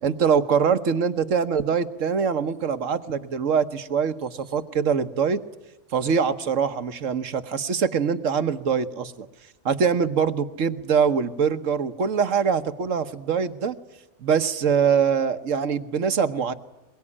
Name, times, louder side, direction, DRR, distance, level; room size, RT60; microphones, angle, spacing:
voice 1, 0.0-5.4 5.9-9.3 9.6-13.8 14.2-16.5, right 6 dB, 80° right, 11 dB, 1.5 m, -23 dB
22.5 x 22.5 x 9.9 m, 0.95 s
omnidirectional pair, 1.3 m